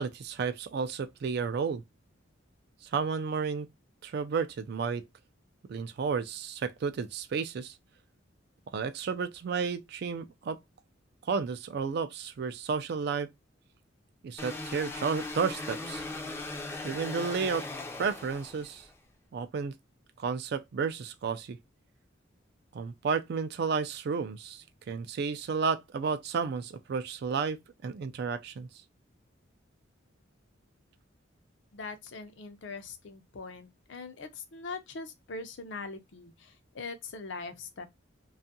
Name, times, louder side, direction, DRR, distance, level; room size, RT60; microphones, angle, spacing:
voice 1, 0.0-1.8 2.9-3.7 4.0-5.0 5.7-7.7 8.7-10.6 11.3-13.3 14.2-16.0 16.8-17.7 18.0-18.8 19.3-19.7 20.2-21.6 22.7-28.7, right 5 dB, 55° right, 0.3 m, -32 dB
sound 1, 14.4-18.9, left 2 dB, 15° left, 0.4 m, -39 dB
voice 2, 31.7-37.9, left 3 dB, 65° left, 0.5 m, -42 dB
2.6 x 2.3 x 2.6 m
head